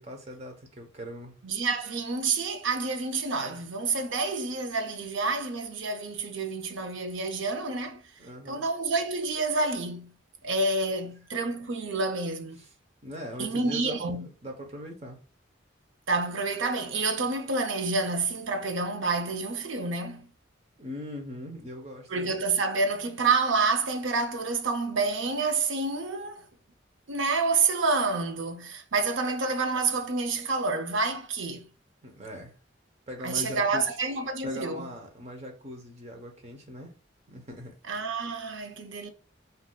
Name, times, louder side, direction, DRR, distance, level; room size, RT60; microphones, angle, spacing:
voice 1, 0.0-1.4 8.2-8.6 12.6-12.7 13.0-15.2 20.8-22.3 32.0-32.5 33.1-34.0 34.4-36.9 37.3-37.7, equal, 30° right, 0.8 m, -40 dB
voice 2, 1.4-8.0 8.5-10.1 10.4-12.6 13.4-14.3 16.1-20.3 22.1-26.4 27.1-31.7 33.2-34.9 37.9-39.1, right 3 dB, 70° right, 0.6 m, -28 dB
3.5 x 2.7 x 2.2 m
head